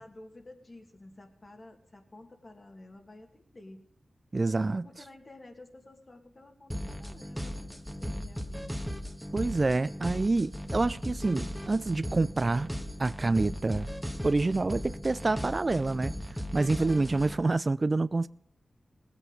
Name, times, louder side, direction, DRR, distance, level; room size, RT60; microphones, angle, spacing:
voice 1, 0.0-3.9 4.8-8.9 13.4-14.1 16.8-17.1, left 2 dB, 40° left, 2.3 m, -52 dB
voice 2, 4.3-4.9 9.3-12.7 13.0-13.9 14.2-16.1 16.5-18.3, right 3 dB, 40° right, 0.4 m, -27 dB
sound 1, 6.7-17.4, equal, ahead, 1.4 m, -37 dB
18.5 x 8.3 x 5.2 m
cardioid pair, 50°, 0 cm